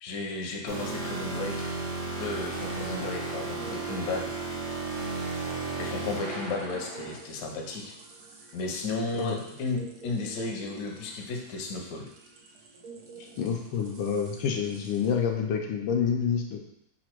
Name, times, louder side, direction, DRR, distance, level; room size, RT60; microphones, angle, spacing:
voice 1, 0.0-1.7 2.2-4.3 5.8-7.9 8.5-12.1, left 3 dB, 65° left, 0 dB, 1.0 m, -34 dB
sound 1, 0.7-7.2, right 3 dB, 40° right, 0.7 m, -34 dB
sound 2, 1.1-15.1, right 4 dB, 65° right, 1.0 m, -51 dB
voice 2, 13.4-16.6, left 7 dB, 85° left, 2 dB, 1.4 m, -28 dB
4.2 x 2.5 x 4.3 m, 0.78 s
omnidirectional pair, 2.1 m